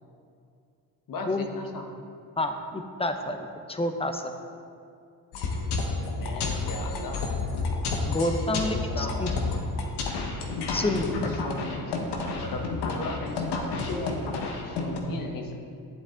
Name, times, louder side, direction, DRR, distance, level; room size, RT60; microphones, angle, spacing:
voice 1, 1.1-1.9 6.0-7.4 8.4-9.4 10.7-15.5, left 2 dB, 55° left, 3 dB, 1.2 m, -37 dB
voice 2, 2.4-4.3 8.0-9.3 10.7-11.1, left 1 dB, 15° left, 6 dB, 0.8 m, -29 dB
sound 1, 5.3-15.0, left 3 dB, 85° left, 1.2 m, -30 dB
10.0 x 8.1 x 3.7 m, 2.4 s
cardioid pair, 80°, 40 cm